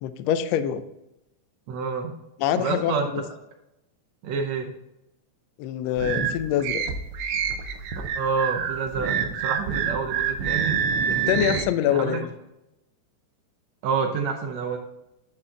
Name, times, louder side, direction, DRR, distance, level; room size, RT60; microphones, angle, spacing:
voice 1, 0.0-0.8 2.4-3.2 5.6-6.8 11.3-12.3, left 10 dB, 80° left, 11 dB, 1.5 m, -25 dB
voice 2, 1.7-2.1 2.5-3.1 4.2-4.7 8.2-11.6 11.9-12.2 13.8-14.8, right 5 dB, 70° right, 4 dB, 1.8 m, -28 dB
sound 1, 6.0-11.6, right 7 dB, 90° right, 1.2 m, -27 dB
9.6 x 4.3 x 3.8 m, 0.88 s
omnidirectional pair, 3.6 m